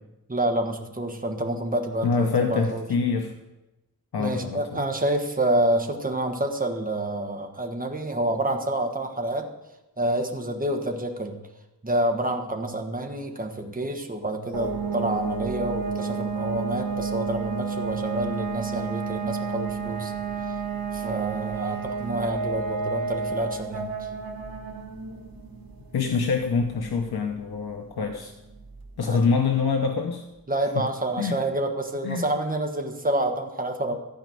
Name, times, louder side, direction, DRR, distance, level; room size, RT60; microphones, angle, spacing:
voice 1, 0.3-2.9 4.2-9.5 10.0-11.4 11.8-20.1 20.9-24.1 29.0-29.3 30.5-34.0, right 1 dB, 25° right, 3 dB, 1.4 m, -28 dB
voice 2, 2.0-3.3 4.1-4.8 25.9-28.3 29.0-30.2 31.2-31.4 32.0-32.3, left 5 dB, 90° left, 4 dB, 1.0 m, -25 dB
sound 1, 14.5-29.1, right 5 dB, 70° right, 1.5 m, -31 dB
14.5 x 5.2 x 9.1 m, 1.0 s
wide cardioid pair, 125°, 36 cm